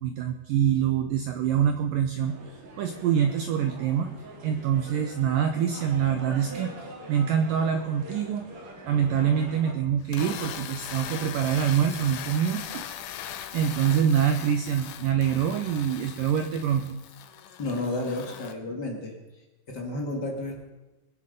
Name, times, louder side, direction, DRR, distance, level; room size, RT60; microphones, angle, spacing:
voice 1, 0.0-2.4 2.8-4.1 4.4-8.4 8.8-12.8 13.3-17.0, right 8 dB, 80° right, 6 dB, 2.0 m, -25 dB
sound 1, 2.3-9.7, right 2 dB, 45° right, 3.0 m, -43 dB
sound 2, 10.0-18.5, left 10 dB, 80° left, 1.8 m, -40 dB
voice 2, 17.6-19.1 19.7-20.5, left 2 dB, 40° left, 0 dB, 1.6 m, -31 dB
22.0 x 9.8 x 5.4 m, 1.1 s
omnidirectional pair, 4.9 m